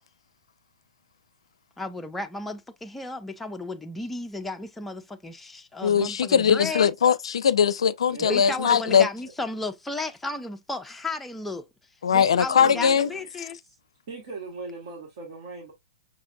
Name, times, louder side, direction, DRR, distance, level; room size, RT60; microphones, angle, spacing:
voice 1, 1.8-6.9 8.2-11.7 12.1-13.6, left 2 dB, 5° left, 0.5 m, -34 dB
voice 2, 5.8-9.1 12.0-13.1, left 7 dB, 75° left, 0.4 m, -20 dB
voice 3, 8.1-8.5 12.6-13.2 13.6-13.8 14.1-15.7, right 3 dB, 60° right, 1.3 m, -38 dB
5.7 x 2.5 x 2.3 m
hypercardioid pair, 115°, 3 cm